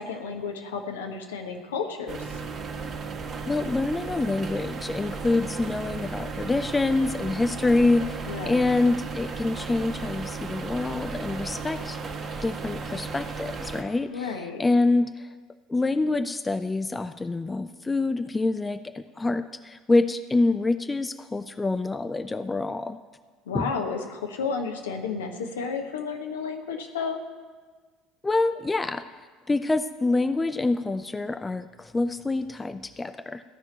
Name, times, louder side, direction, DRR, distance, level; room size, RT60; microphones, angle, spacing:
voice 1, 0.0-2.4 8.3-8.7 14.1-14.6 23.5-27.2, left 5 dB, 75° left, 3 dB, 1.3 m, -32 dB
sound 1, 2.1-13.8, right 4 dB, 40° right, 1.7 m, -35 dB
voice 2, 3.5-12.0 12.4-15.3 15.7-23.0 23.5-23.7 28.2-33.4, left 2 dB, 15° left, 11 dB, 0.5 m, -26 dB
14.5 x 5.9 x 8.9 m, 1.5 s
figure-of-eight pair, 60°, 0 cm